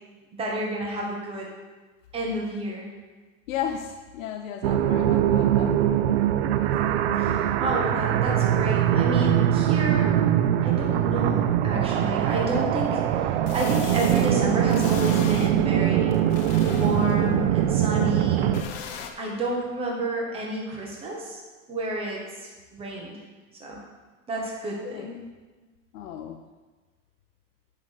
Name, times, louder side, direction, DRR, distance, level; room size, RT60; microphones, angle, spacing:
voice 1, 0.4-1.5 2.1-2.9 7.2-10.1 10.6-16.2 16.7-18.5 19.2-21.4 21.7-22.2 22.7-23.1 23.6-23.8 24.3-25.1, right 1 dB, 15° right, -2 dB, 1.3 m, -30 dB
voice 2, 3.5-5.8 24.8-25.1 25.9-26.4, left 9 dB, 75° left, 5 dB, 0.7 m, -34 dB
sound 1, 4.6-18.6, right 11 dB, 50° right, 0.5 m, -22 dB
sound 2, 12.3-12.4 13.5-14.3 14.7-15.5 16.1-17.2 18.5-19.1, left 7 dB, 35° left, 0.6 m, -39 dB
9.7 x 3.7 x 6.5 m, 1.3 s
supercardioid pair, 170°, 40 cm